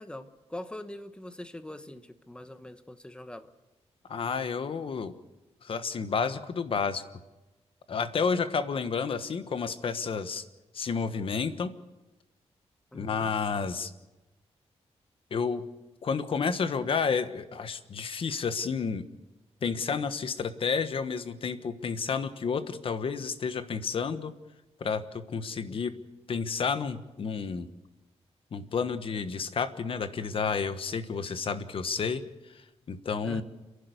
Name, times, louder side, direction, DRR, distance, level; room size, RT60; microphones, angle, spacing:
voice 1, 0.0-3.5 12.9-13.3 25.3-25.8 33.2-33.4, left 1 dB, 10° left, 10 dB, 1.1 m, -43 dB
voice 2, 4.1-5.1 5.6-7.0 7.9-10.4 10.7-11.7 12.9-13.9 15.3-15.7 16.0-19.0 19.6-24.3 24.8-26.0 26.3-27.7 28.5-32.2 32.5-33.4, left 5 dB, 55° left, 11 dB, 1.3 m, -30 dB
30.0 x 11.5 x 8.1 m, 1.1 s
wide cardioid pair, 150°, 11 cm